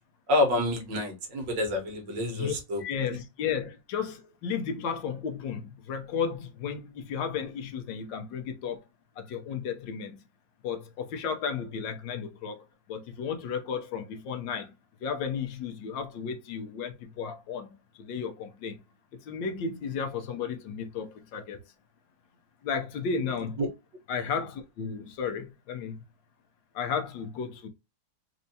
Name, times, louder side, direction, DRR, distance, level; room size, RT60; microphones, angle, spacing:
voice 1, 0.3-2.8 3.1-3.2 23.6-23.7, left 2 dB, 65° right, 1.9 m, -28 dB
voice 2, 2.8-8.8 9.2-10.2 10.6-12.6 12.9-14.7 15.0-17.7 18.0-18.8 19.3-21.6 22.6-23.6 24.1-26.0 26.7-27.7, left 6 dB, 75° left, 1.4 m, -33 dB
4.4 x 2.7 x 2.7 m
omnidirectional pair, 2.1 m